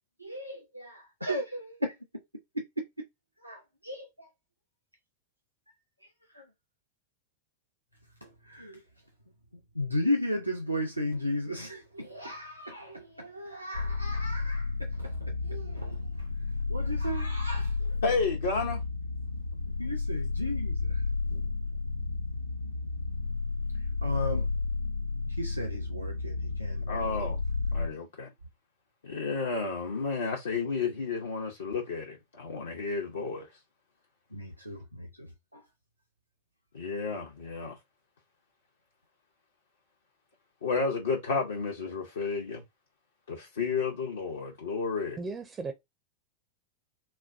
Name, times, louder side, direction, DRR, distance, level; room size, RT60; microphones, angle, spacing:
voice 1, 0.2-1.9 3.4-4.3 6.3-6.4 8.2-8.8 9.7-16.0 16.7-18.0 19.8-21.0 21.3-21.5 24.0-24.5 25.4-27.1 34.3-35.1 35.5-35.6, left 1 dB, 90° right, 0.6 m, -35 dB
sound 1, 13.7-27.9, left 3 dB, 85° left, 0.3 m, -32 dB
voice 2, 18.0-18.8 26.9-27.4 27.7-28.3 29.0-33.5 36.7-37.8 40.6-42.6 43.3-45.2, left 4 dB, 65° left, 0.7 m, -31 dB
voice 3, 45.2-45.7, right 4 dB, 20° right, 0.5 m, -36 dB
4.1 x 2.2 x 2.5 m
figure-of-eight pair, 90°, 0 cm